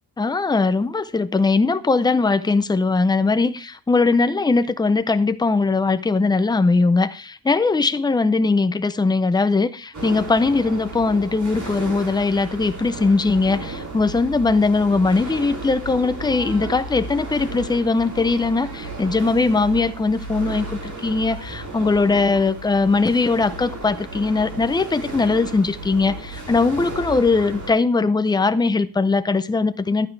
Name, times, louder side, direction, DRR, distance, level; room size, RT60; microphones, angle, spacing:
voice 1, 0.2-30.1, left 3 dB, 10° left, 0.5 m, -20 dB
sound 1, 9.9-27.7, right 2 dB, 50° right, 6.5 m, -34 dB
11.0 x 9.6 x 3.2 m
wide cardioid pair, 170°, 38 cm